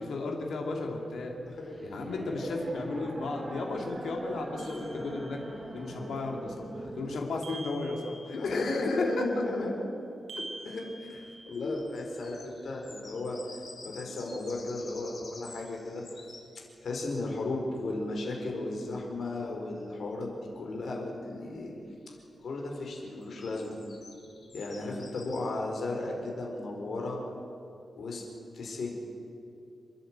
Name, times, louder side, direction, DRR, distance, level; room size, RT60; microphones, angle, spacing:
voice 1, 0.0-1.3 1.8-5.4 5.7-9.2 11.5-11.8, left 3 dB, 85° left, 1 dB, 2.7 m, -34 dB
sound 1, 1.2-7.2, right 2 dB, 25° right, 2.3 m, -42 dB
voice 2, 1.4-1.8 4.9-5.2 6.8-6.9 8.4-9.8 10.6-13.4 13.8-16.0 16.8-21.7 22.4-23.8 24.5-27.2 28.0-28.2 28.5-29.0, left 2 dB, 65° left, 0 dB, 4.7 m, -35 dB
sound 2, 4.6-5.6 7.4-8.7 10.3-11.8, right 2 dB, 75° right, 4.6 m, -46 dB
sound 3, 11.5-16.4 19.3-19.4 21.9-22.0 23.2-25.4, left 3 dB, 45° left, 4.0 m, -50 dB
28.0 x 11.0 x 8.9 m, 2.7 s
wide cardioid pair, 115°, 0 cm